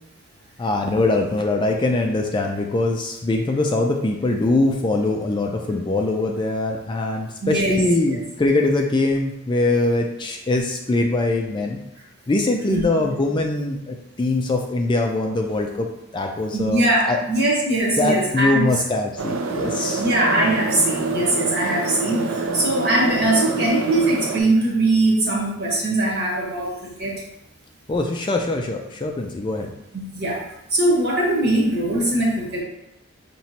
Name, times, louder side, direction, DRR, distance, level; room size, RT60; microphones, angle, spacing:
voice 1, 0.6-11.8 12.3-15.9 16.1-17.2 18.0-20.0 27.9-29.7, left 2 dB, 20° left, 2 dB, 0.3 m, -22 dB
voice 2, 7.4-8.1 12.7-12.8 16.5-18.8 20.0-27.2 30.1-32.6, right 1 dB, 50° right, -4 dB, 1.3 m, -21 dB
sound 1, 19.2-24.4, right 3 dB, 75° right, 0.5 m, -26 dB
5.7 x 3.0 x 2.8 m, 0.85 s
head